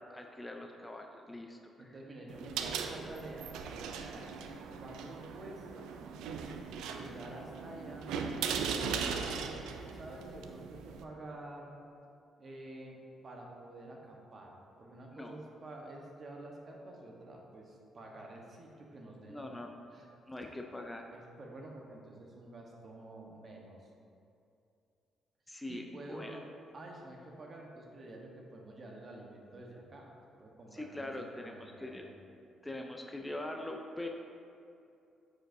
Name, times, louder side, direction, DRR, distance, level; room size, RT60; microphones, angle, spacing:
voice 1, 0.1-1.9 15.1-15.4 19.3-19.7 20.3-21.1 25.5-26.4 30.7-32.1 32.6-34.1, left 1 dB, 15° left, 2 dB, 0.5 m, -43 dB
voice 2, 1.8-4.3 4.8-5.8 6.8-11.7 12.4-19.6 19.9-20.1 21.1-23.9 25.5-26.5 26.7-32.1, right 1 dB, 45° right, 0 dB, 1.1 m, -49 dB
sound 1, 2.3-11.0, right 6 dB, 90° right, 0.4 m, -39 dB
8.6 x 5.0 x 2.6 m, 2.6 s
cardioid pair, 90°, 0 cm